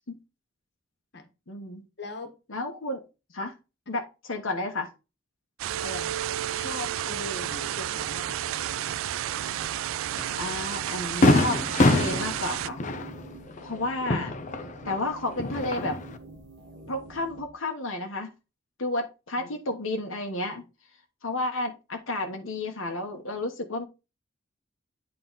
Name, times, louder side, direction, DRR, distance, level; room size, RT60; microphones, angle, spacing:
voice 1, 1.5-1.8 2.5-3.0 3.3-3.6 3.9-4.9 10.4-12.8 13.6-14.3 14.9-16.0 16.9-18.3 18.8-20.6 21.2-23.8, left 2 dB, 85° left, 1.2 m, -31 dB
voice 2, 2.0-2.3 5.8-6.2 6.5-8.8 19.4-19.5, left 3 dB, 55° left, 1.4 m, -40 dB
sound 1, 5.6-12.7, right 12 dB, 85° right, 0.3 m, -32 dB
sound 2, 5.7-17.5, right 6 dB, 60° right, 1.6 m, -43 dB
Fireworks, 10.2-10.3 10.7-10.8 11.2-15.0 15.3-16.2, left 2 dB, 40° left, 0.6 m, -24 dB
9.2 x 3.8 x 4.0 m
head